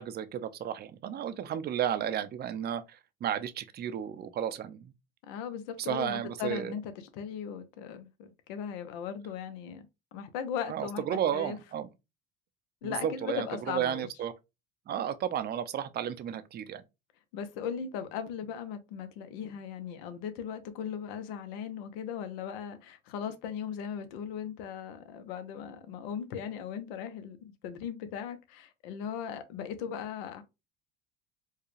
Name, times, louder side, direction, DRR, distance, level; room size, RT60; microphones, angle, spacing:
voice 1, 0.0-4.9 5.8-6.7 10.7-11.9 12.8-14.3 14.9-16.8, right 9 dB, 35° right, 0.5 m, -33 dB
voice 2, 5.2-11.0 11.3-11.6 12.8-14.1 17.3-30.4, left 8 dB, 85° left, 0.9 m, -38 dB
4.6 x 2.3 x 3.1 m
supercardioid pair, 105°, 29 cm